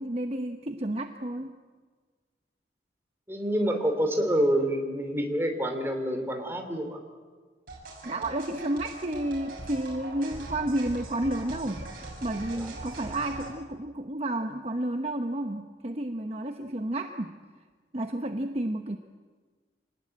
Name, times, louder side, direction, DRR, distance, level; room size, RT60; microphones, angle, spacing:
voice 1, 0.0-1.6 8.0-11.9 12.2-17.4 17.9-19.0, right 1 dB, 35° right, 5 dB, 1.0 m, -31 dB
voice 2, 3.3-7.0 12.5-12.7, equal, 15° right, 4 dB, 3.1 m, -27 dB
sound 1, 7.7-13.5, right 2 dB, 55° right, 7.4 m, -41 dB
26.5 x 19.5 x 8.9 m, 1.5 s
head